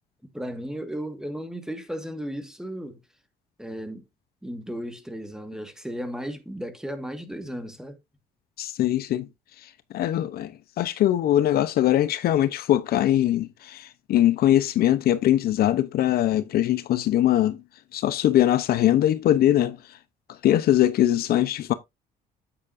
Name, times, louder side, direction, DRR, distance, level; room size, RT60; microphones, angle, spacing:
voice 1, 0.3-3.0 3.6-4.0 4.4-8.0, equal, 5° right, 1.7 m, -35 dB
voice 2, 8.6-9.3 9.9-17.6 17.9-19.8 20.4-21.7, left 12 dB, 65° left, 0.8 m, -21 dB
9.2 x 8.5 x 2.6 m
cardioid pair, 110°, 17 cm